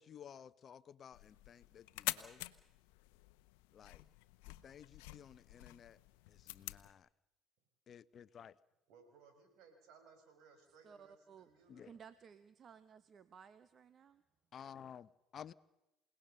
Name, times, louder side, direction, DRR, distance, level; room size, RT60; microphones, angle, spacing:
voice 1, 0.0-2.4 3.7-4.0 4.5-6.0 6.3-7.1 7.9-8.6 11.7-11.9 14.5-15.5, left 8 dB, 50° left, 16 dB, 0.8 m, -55 dB
sound 1, 1.1-6.9, left 20 dB, 80° left, 0.8 m, -47 dB
voice 2, 8.9-11.9, right 5 dB, 70° right, 6 dB, 5.3 m, -63 dB
voice 3, 10.8-11.5 11.8-14.2, right 7 dB, 45° right, 14 dB, 1.1 m, -58 dB
28.5 x 18.0 x 6.8 m, 0.95 s
hypercardioid pair, 70°, 0 cm